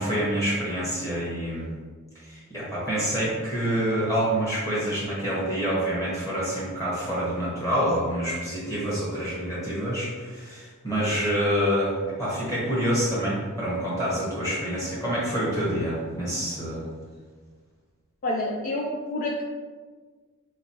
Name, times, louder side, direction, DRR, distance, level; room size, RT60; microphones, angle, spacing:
voice 1, 0.0-1.7 2.2-16.8, equal, 15° left, -8 dB, 1.1 m, -27 dB
voice 2, 18.2-19.4, left 1 dB, 35° left, -1 dB, 0.3 m, -28 dB
3.4 x 3.1 x 4.3 m, 1.5 s
head